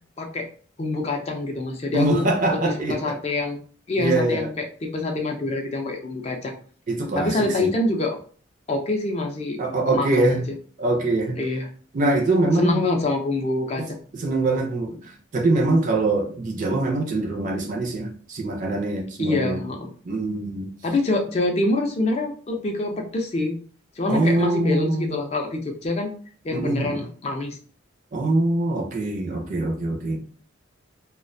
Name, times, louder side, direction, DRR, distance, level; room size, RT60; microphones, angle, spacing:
voice 1, 0.2-0.5 0.8-3.6 3.9-6.5 7.1-8.2 8.7-9.6 9.9-10.4 11.4-11.7 12.6-14.0 19.2-19.9 20.8-23.6 24.0-26.1 26.4-27.6, left 2 dB, 30° left, 0.3 m, -25 dB
voice 2, 1.9-3.1 4.0-4.5 6.9-7.7 9.6-10.4 10.8-11.4 11.9-12.8 13.8-13.9 14.1-19.6 20.0-20.7 24.1-25.2 26.5-27.0 28.1-30.2, right 2 dB, 40° right, 0.4 m, -23 dB
2.3 x 2.1 x 2.5 m
head